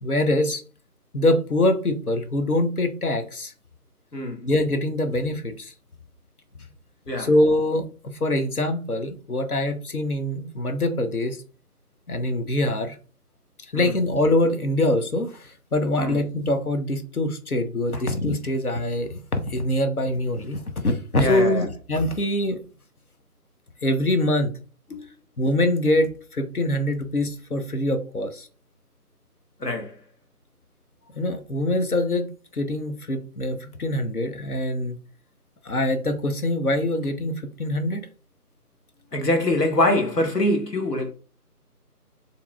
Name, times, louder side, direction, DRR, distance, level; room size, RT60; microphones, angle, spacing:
voice 1, 0.0-0.6 1.1-3.5 4.4-5.7 7.2-7.9 8.2-11.4 12.1-13.0 13.7-22.6 23.8-24.5 25.4-28.5 31.1-35.0 35.6-38.0, left 1 dB, 65° left, 1.0 m, -24 dB
voice 2, 21.2-21.7 24.9-25.0 29.6-30.0 39.1-41.1, left 1 dB, 80° left, 1.4 m, -24 dB
6.9 x 3.0 x 2.3 m
figure-of-eight pair, 160°, 47 cm